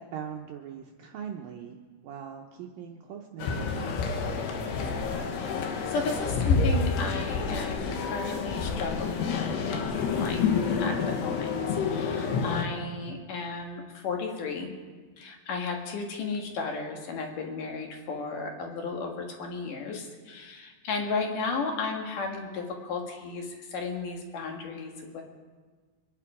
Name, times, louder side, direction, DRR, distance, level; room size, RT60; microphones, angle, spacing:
voice 1, 0.0-1.8 2.0-3.9, right 8 dB, 75° right, 2 dB, 2.2 m, -40 dB
sound 1, 3.4-12.6, left 5 dB, 80° left, 3.4 m, -28 dB
voice 2, 5.3-5.6 5.9-10.4 10.8-14.7 15.2-25.2, left 4 dB, 55° left, 2 dB, 3.0 m, -34 dB
25.0 x 10.5 x 4.9 m, 1.4 s
omnidirectional pair, 4.9 m